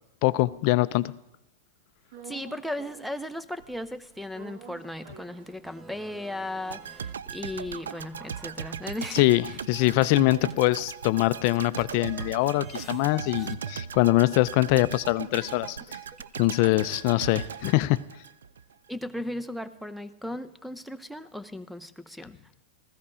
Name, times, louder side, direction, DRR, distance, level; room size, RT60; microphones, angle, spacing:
voice 1, 0.2-1.1 9.1-15.8 16.4-18.0, left 18 dB, 50° left, 0.5 m, -23 dB
sound 1, 2.1-3.3 3.6-6.2 6.6-6.7 6.8-11.3 11.7-15.7, right 7 dB, 60° right, 1.6 m, -51 dB
voice 2, 2.2-9.6 18.9-22.4, left 1 dB, ahead, 0.7 m, -36 dB
sound 2, 5.6-9.1 9.5-17.9, right 3 dB, 20° right, 1.1 m, -51 dB
sound 3, 6.7-18.7 19.0-19.2, right 7 dB, 90° right, 0.4 m, -38 dB
15.0 x 13.5 x 5.0 m
hypercardioid pair, 120°, 0 cm